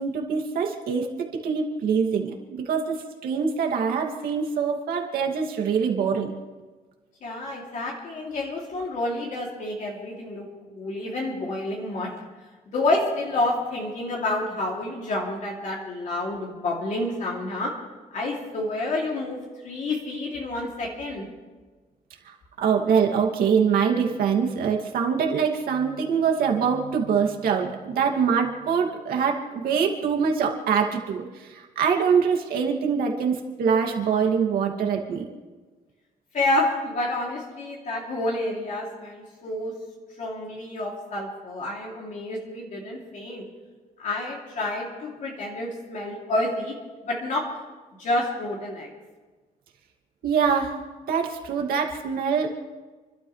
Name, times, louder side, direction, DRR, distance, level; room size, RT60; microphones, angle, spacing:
voice 1, 0.0-6.3 22.6-31.3 31.8-35.3 50.2-50.7 51.1-52.5, right 6 dB, 85° right, 1 dB, 2.5 m, -24 dB
voice 2, 7.2-12.1 12.7-17.8 18.1-21.3 36.3-39.7 40.2-43.4 44.0-46.7 47.1-47.5 48.0-48.9, left 2 dB, 55° left, -2 dB, 3.0 m, -29 dB
29.5 x 12.5 x 3.3 m, 1.3 s
cardioid pair, 140°, 15 cm